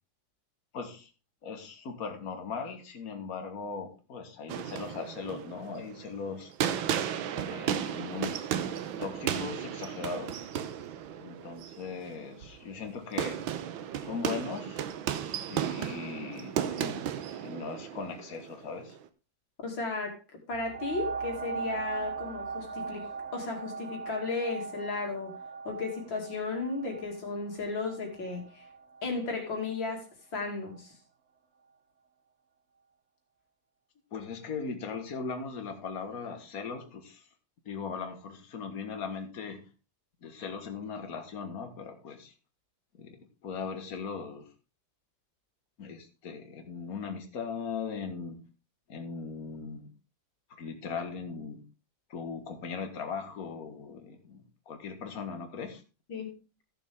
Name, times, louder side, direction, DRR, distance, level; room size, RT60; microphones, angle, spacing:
voice 1, 0.7-1.1 1.4-6.5 7.3-8.3 9.0-10.5 11.2-13.4 14.0-14.8 15.2-19.0 34.1-37.3 37.7-39.6 40.2-42.3 43.0-44.5 45.8-48.4 48.9-49.9 50.6-51.6 52.1-55.8, left 5 dB, 50° left, 6 dB, 1.9 m, -39 dB
sound 1, 4.5-19.1, right 9 dB, 85° right, 1.6 m, -35 dB
voice 2, 19.6-20.2 20.5-23.1 23.3-25.4 25.6-28.6 29.0-30.1 30.3-30.9 56.1-56.3, left 3 dB, 75° left, 2 dB, 3.3 m, -34 dB
sound 2, 20.5-29.8 30.4-30.5, right 4 dB, 65° right, 0.6 m, -40 dB
15.5 x 6.9 x 3.6 m, 0.32 s
omnidirectional pair, 2.1 m